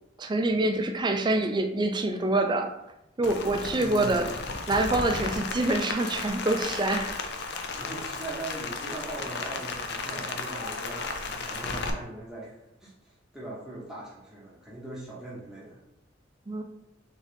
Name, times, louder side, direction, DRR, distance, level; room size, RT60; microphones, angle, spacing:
voice 1, 0.2-2.7 3.2-4.3 4.7-7.1 16.5-16.6, right 2 dB, 25° right, 5 dB, 0.4 m, -26 dB
Rain, 3.2-11.9, left 4 dB, 60° left, 0.5 m, -34 dB
voice 2, 3.4-4.4 7.7-12.5 12.8-15.8, right 2 dB, 5° right, -7 dB, 0.9 m, -40 dB
3.9 x 3.7 x 3.5 m, 0.87 s
head